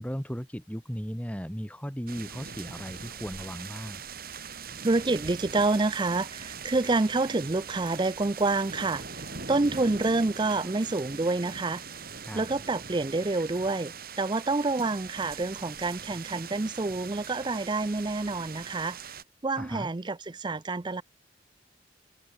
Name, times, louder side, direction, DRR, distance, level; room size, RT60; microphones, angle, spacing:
voice 1, 0.0-4.0 12.2-12.5 19.6-19.9, equal, 5° left, 4.9 m, -36 dB
sound 1, 2.1-19.2, right 6 dB, 50° right, 6.4 m, -41 dB
voice 2, 4.8-9.0 9.5-11.8 12.3-19.0 19.4-21.0, right 3 dB, 25° right, 0.5 m, -28 dB
head